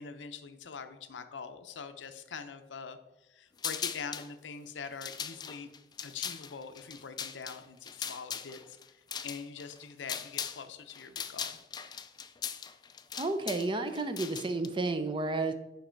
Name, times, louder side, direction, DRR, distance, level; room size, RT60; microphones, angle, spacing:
voice 1, 0.0-5.7 6.0-11.6, left 5 dB, 90° left, 8 dB, 0.6 m, -44 dB
sound 1, 3.6-4.3 4.8-10.6 10.9-14.7, left 7 dB, 25° left, 0.3 m, -39 dB
voice 2, 13.2-15.5, right 2 dB, 30° right, 8 dB, 0.6 m, -31 dB
7.3 x 5.3 x 4.4 m, 0.99 s
head